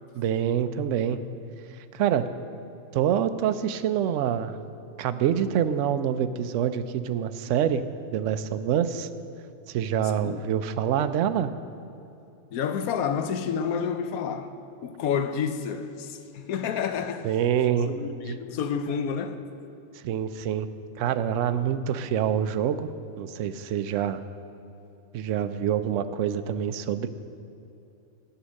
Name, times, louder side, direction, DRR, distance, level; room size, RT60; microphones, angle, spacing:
voice 1, 0.1-1.2 1.9-2.3 2.9-4.6 5.0-7.8 8.1-9.1 9.7-11.5 17.2-17.9 18.3-18.4 19.9-20.7 21.0-22.9 23.2-24.2 25.1-27.1, right 9 dB, 65° right, 0.9 m, -26 dB
voice 2, 12.5-14.5 14.8-17.3 17.9-19.5, left 7 dB, 80° left, 1.2 m, -29 dB
13.0 x 9.5 x 6.4 m
omnidirectional pair, 1.5 m